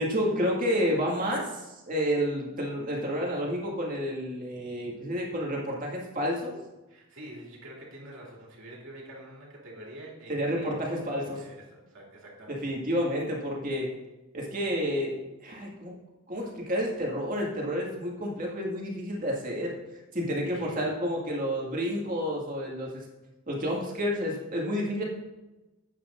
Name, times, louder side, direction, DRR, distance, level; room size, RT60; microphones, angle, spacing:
voice 1, 0.0-6.6 10.3-11.4 12.5-13.9 14.3-15.1 15.4-15.9 16.3-23.1 23.5-25.0, equal, 40° right, -2 dB, 2.1 m, -30 dB
voice 2, 6.9-12.8 20.4-20.9, right 1 dB, 60° right, -3 dB, 2.7 m, -46 dB
10.0 x 8.8 x 2.6 m, 1.1 s
head